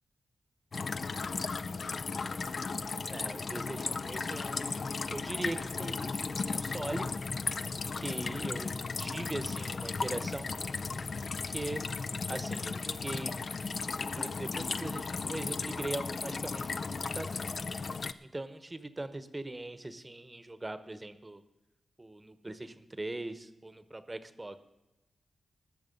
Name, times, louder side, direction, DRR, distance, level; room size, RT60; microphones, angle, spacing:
sound 1, 0.7-18.1, left 4 dB, 55° left, 0.5 m, -35 dB
voice 1, 3.1-7.1 7.9-10.5 11.5-11.8 12.3-13.3 14.0-17.5 18.2-21.4 22.0-24.6, right 2 dB, 20° right, 12 dB, 1.0 m, -40 dB
19.5 x 6.9 x 5.4 m, 0.99 s
wide cardioid pair, 85°, 0 cm